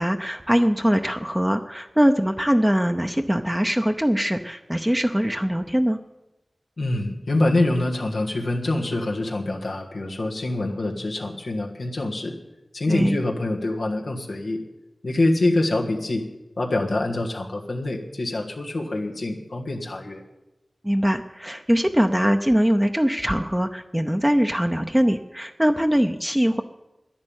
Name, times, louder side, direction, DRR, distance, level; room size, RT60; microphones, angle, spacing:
voice 1, 0.0-6.0 12.9-13.2 20.8-26.6, equal, 10° right, 5 dB, 0.8 m, -22 dB
voice 2, 6.8-12.3 12.7-14.6 15.0-16.2 16.6-20.2, left 2 dB, 90° left, -1 dB, 1.5 m, -25 dB
11.0 x 10.5 x 8.8 m, 1.0 s
wide cardioid pair, 45°, 0 cm